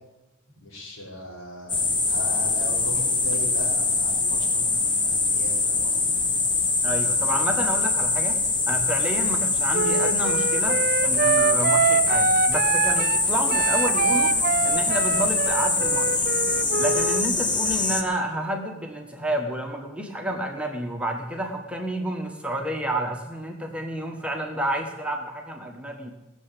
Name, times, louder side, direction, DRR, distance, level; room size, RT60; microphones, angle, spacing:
voice 1, 0.6-6.1, equal, 85° left, -3 dB, 5.0 m, -38 dB
sound 1, 1.7-18.0, left 3 dB, 20° left, 1.3 m, -23 dB
voice 2, 6.8-8.4 8.7-14.3 14.6-16.3 16.8-26.1, right 1 dB, 5° right, 2 dB, 1.4 m, -30 dB
Wind instrument woodwind instrument, 9.7-17.2, right 5 dB, 45° right, 0.5 m, -25 dB
18.0 x 7.1 x 8.5 m, 1.0 s
head